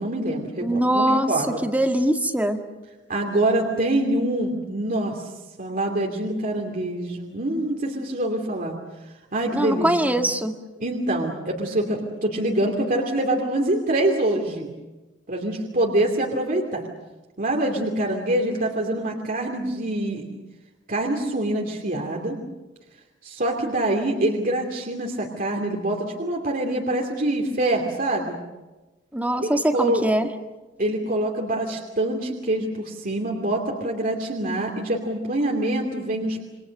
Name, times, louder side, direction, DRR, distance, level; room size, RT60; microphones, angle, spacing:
voice 1, 0.0-1.6 3.1-5.3 5.6-8.8 9.3-10.2 10.8-14.7 15.3-16.9 17.4-20.3 20.9-22.4 23.2-28.4 29.4-30.1 30.8-36.4, right 1 dB, 50° right, 0 dB, 2.7 m, -25 dB
voice 2, 0.6-1.3 1.6-2.6 9.5-10.5 29.1-30.3, right 1 dB, 10° right, 5 dB, 1.8 m, -22 dB
28.5 x 25.0 x 6.5 m, 1.1 s
head